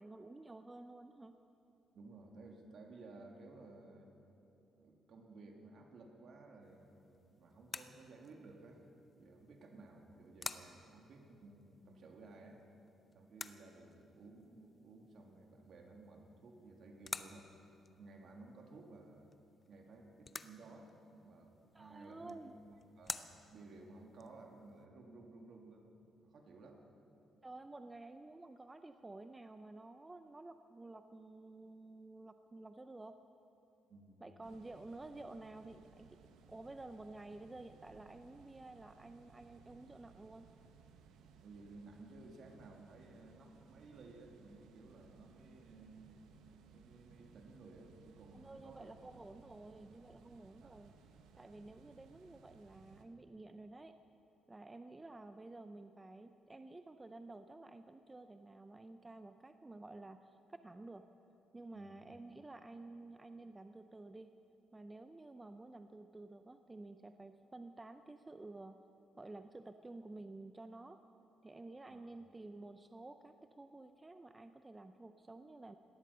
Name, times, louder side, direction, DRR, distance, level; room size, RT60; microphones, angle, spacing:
voice 1, 0.0-1.4 21.7-22.5 27.4-33.2 34.2-36.2 36.5-40.5 48.3-51.0 51.3-54.0 54.5-61.1 61.5-64.4 64.7-68.8 69.2-71.0 71.4-75.8, right 2 dB, 20° right, 9 dB, 0.5 m, -52 dB
voice 2, 1.9-4.1 4.7-12.6 13.1-17.5 18.0-19.3 19.7-25.9 26.2-26.8 33.9-34.2 41.4-46.2 46.7-49.2 50.6-50.9 61.7-62.0 71.9-72.1, right 3 dB, 60° right, 2 dB, 2.2 m, -56 dB
sound 1, 6.6-24.9, left 4 dB, 30° left, 0.6 m, -52 dB
sound 2, 34.4-53.1, right 6 dB, 90° right, 1.0 m, -63 dB
18.0 x 12.5 x 5.5 m, 2.9 s
cardioid pair, 90°, 0 cm